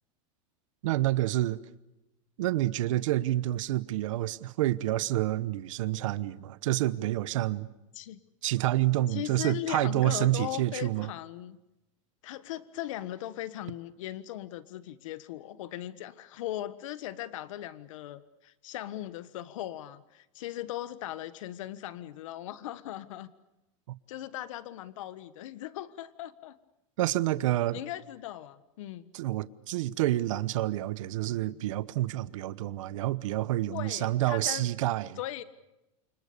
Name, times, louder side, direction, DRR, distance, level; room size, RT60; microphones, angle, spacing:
voice 1, 0.8-1.6 2.4-7.7 8.4-11.1 23.9-24.0 27.0-27.8 29.1-35.2, right 15 dB, 80° right, 1.1 m, -28 dB
voice 2, 9.1-11.6 12.2-23.3 24.1-26.6 27.7-29.1 33.7-34.7 35.2-35.4, left 13 dB, 80° left, 1.4 m, -39 dB
29.0 x 25.5 x 6.9 m
supercardioid pair, 165°, 16 cm